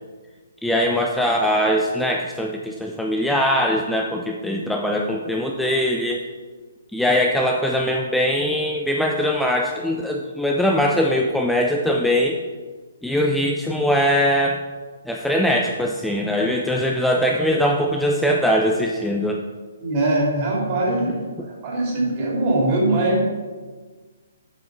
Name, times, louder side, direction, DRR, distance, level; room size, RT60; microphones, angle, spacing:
voice 1, 0.6-6.2 6.9-12.4 13.0-14.6 15.1-19.4, equal, ahead, 0 dB, 0.5 m, -21 dB
voice 2, 19.8-21.3 21.6-23.3, right 2 dB, 40° right, -2 dB, 2.6 m, -21 dB
7.7 x 5.3 x 4.6 m, 1.4 s
figure-of-eight pair, 135°, 0 cm